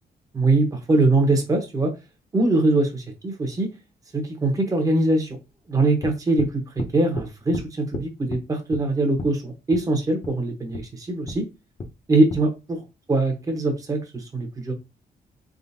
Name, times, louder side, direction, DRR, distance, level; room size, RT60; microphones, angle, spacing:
voice 1, 0.3-1.9 2.3-3.7 4.1-5.4 5.7-11.4 12.1-12.8 13.1-14.7, right 2 dB, 20° right, 3 dB, 1.0 m, -22 dB
sound 1, 6.0-6.5 6.8-7.3 7.5-7.7 7.9-8.4 8.7-8.9 9.2-9.3 9.7-9.9 10.2-10.3 10.7-10.8 11.3-11.4 11.8-11.9 12.3-12.4, left 2 dB, 35° left, 0.8 m, -32 dB
3.8 x 3.7 x 2.8 m, 0.25 s
cardioid pair, 145°, 16 cm